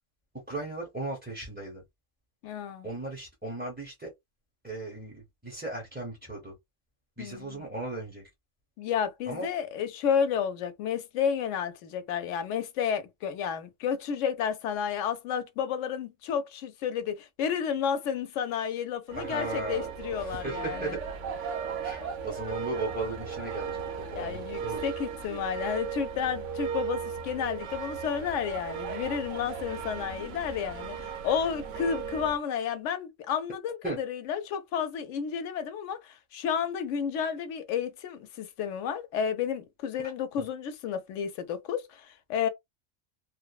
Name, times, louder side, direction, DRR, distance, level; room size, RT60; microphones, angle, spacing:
voice 1, 0.5-1.8 2.8-4.1 4.6-6.5 7.2-8.3 9.3-9.5 19.1-19.9 20.1-21.0 21.8-24.9 33.8-34.0 40.4-40.5, right 2 dB, 10° right, 0.7 m, -37 dB
voice 2, 2.4-2.9 7.2-7.6 8.8-21.0 22.0-22.1 24.2-42.5, left 7 dB, 85° left, 0.9 m, -31 dB
sound 1, 19.1-32.4, right 7 dB, 85° right, 1.0 m, -36 dB
3.1 x 2.0 x 2.2 m
omnidirectional pair, 1.2 m